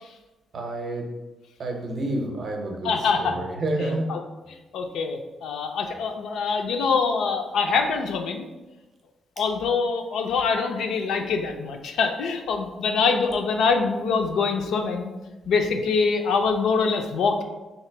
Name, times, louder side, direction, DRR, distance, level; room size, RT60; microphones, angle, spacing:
voice 1, 0.5-1.1 1.6-4.1 9.4-9.5, right 1 dB, 40° right, 2 dB, 0.6 m, -29 dB
voice 2, 2.8-3.4 4.1-4.2 4.7-8.4 9.4-15.1 15.5-17.4, left 5 dB, 75° left, 4 dB, 0.4 m, -24 dB
3.2 x 2.9 x 4.4 m, 1.1 s
cardioid pair, 170°, 0 cm